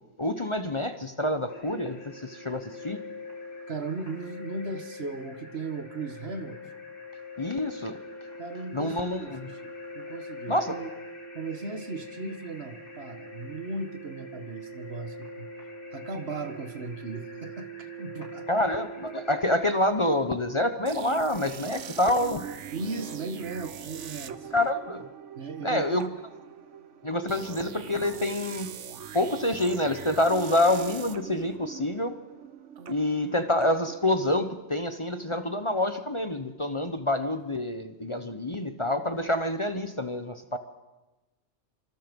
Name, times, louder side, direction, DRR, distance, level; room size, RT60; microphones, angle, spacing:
voice 1, 0.2-3.0 7.4-8.0 8.7-9.5 10.5-10.8 18.5-22.5 24.5-25.0 25.6-26.1 27.0-28.7 29.1-32.1 32.9-40.6, left 1 dB, 25° left, 8 dB, 1.0 m, -27 dB
sound 1, 1.5-19.4, left 1 dB, 70° left, 8.5 m, -43 dB
voice 2, 3.7-6.6 8.4-10.9 11.3-15.5 15.9-18.5 22.7-24.7 25.3-26.0, right 3 dB, 60° right, 8 dB, 1.8 m, -37 dB
sound 2, 20.9-34.6, right 8 dB, 85° right, 1.3 m, -42 dB
25.5 x 25.5 x 5.3 m, 1.1 s
omnidirectional pair, 1.2 m